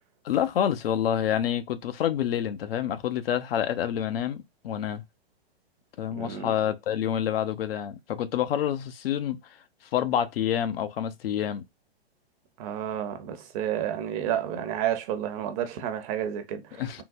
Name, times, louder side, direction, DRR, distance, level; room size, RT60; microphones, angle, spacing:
voice 1, 0.2-5.0 6.0-9.4 9.9-11.6 16.8-17.0, left 10 dB, 65° left, 0.6 m, -27 dB
voice 2, 6.2-6.5 12.6-17.0, right 10 dB, 35° right, 0.7 m, -31 dB
3.8 x 2.1 x 2.6 m
hypercardioid pair, 130°, 32 cm